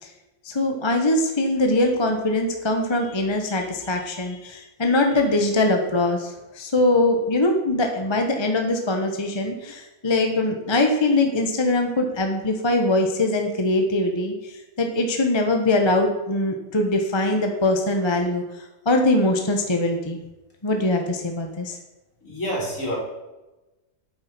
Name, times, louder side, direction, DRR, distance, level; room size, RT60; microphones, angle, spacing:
voice 1, 0.4-14.3 14.8-18.4 18.9-20.2 20.6-21.8, left 2 dB, 20° left, 3 dB, 1.0 m, -22 dB
voice 2, 22.2-23.0, equal, 60° left, -4 dB, 3.8 m, -28 dB
9.0 x 7.6 x 5.9 m, 1.1 s
omnidirectional pair, 1.5 m